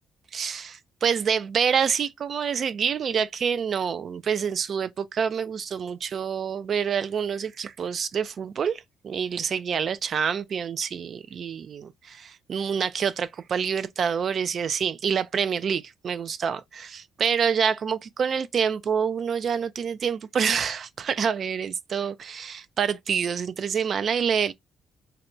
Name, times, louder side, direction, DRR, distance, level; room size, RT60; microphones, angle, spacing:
voice 1, 0.3-24.5, right 7 dB, 55° right, 0.3 m, -27 dB
4.0 x 2.2 x 2.5 m
cardioid pair, 90°, 0 cm